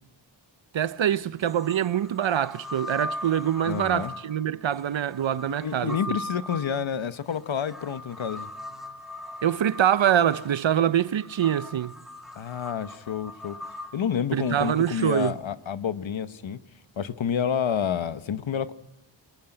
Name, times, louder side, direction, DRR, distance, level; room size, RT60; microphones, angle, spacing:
voice 1, 0.7-6.2 9.4-11.9 14.3-15.4, right 10 dB, 70° right, 0.8 m, -24 dB
sound 1, 0.8-0.9 1.4-15.3, left 1 dB, ahead, 1.6 m, -40 dB
voice 2, 3.7-4.1 5.5-8.5 12.4-13.6 13.9-16.6 17.0-18.7, left 8 dB, 75° left, 1.1 m, -29 dB
23.5 x 21.5 x 8.9 m
wide cardioid pair, 115°, 47 cm